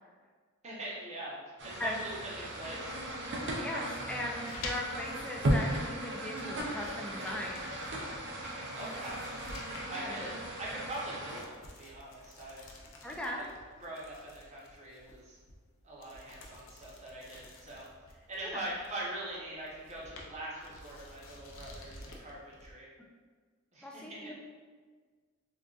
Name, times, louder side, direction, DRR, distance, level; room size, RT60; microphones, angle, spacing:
voice 1, 0.6-2.9 8.8-9.3 9.9-10.3 10.6-12.7 13.3-13.4 13.8-15.4 15.8-22.9 23.7-24.3, right 1 dB, 35° right, -6 dB, 0.8 m, -42 dB
sound 1, 1.6-11.4, right 1 dB, 55° right, 0.5 m, -36 dB
voice 2, 3.6-7.7 9.9-10.2 13.0-13.4 18.4-18.6 23.8-24.3, left 1 dB, 5° left, -2 dB, 0.3 m, -39 dB
sound 2, 4.3-22.7, left 2 dB, 65° left, 0.5 m, -51 dB
3.8 x 2.4 x 2.4 m, 1.5 s
head